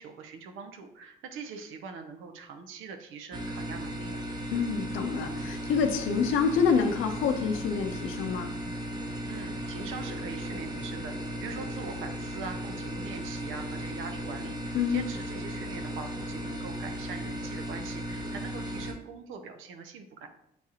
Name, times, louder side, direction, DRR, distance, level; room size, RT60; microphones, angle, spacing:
voice 1, 0.0-4.2 9.3-20.3, right 5 dB, 85° right, 5 dB, 0.6 m, -42 dB
sound 1, 3.3-18.9, equal, 20° right, 0.8 m, -36 dB
voice 2, 4.5-8.5 14.7-15.0, left 6 dB, 85° left, 6 dB, 0.6 m, -27 dB
6.9 x 2.4 x 2.8 m, 0.77 s
cardioid pair, 90°, 20 cm